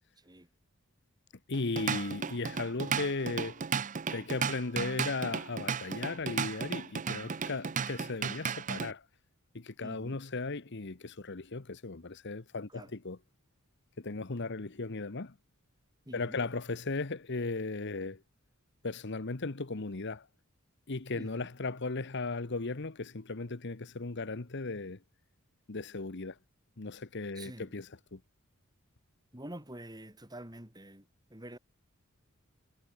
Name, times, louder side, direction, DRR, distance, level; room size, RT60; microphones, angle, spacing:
voice 1, 1.5-3.6 4.1-9.0 9.5-13.2 14.0-15.3 16.1-18.2 18.8-20.3 20.9-25.0 25.7-26.4 26.8-28.2, left 3 dB, 55° left, 1.1 m, -36 dB
Drum kit / Drum, 1.5-8.9, right 6 dB, 35° right, 0.6 m, -34 dB
voice 2, 7.0-7.4 9.8-10.2 12.7-12.9 16.1-16.4 21.2-21.5 27.3-27.7 29.3-31.6, right 1 dB, 20° right, 7.4 m, -47 dB
head